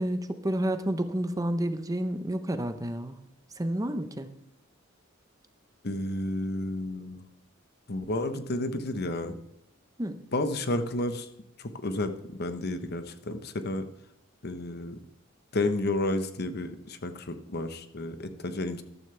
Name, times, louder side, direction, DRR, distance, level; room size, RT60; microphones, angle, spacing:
voice 1, 0.0-3.2 3.6-4.3 10.0-10.2, right 1 dB, 15° right, 9 dB, 0.8 m, -30 dB
voice 2, 5.8-7.2 7.9-9.4 10.3-11.3 11.6-13.9 14.4-15.0 15.5-18.8, left 2 dB, 50° left, 9 dB, 1.0 m, -31 dB
14.0 x 12.5 x 3.4 m, 0.82 s
head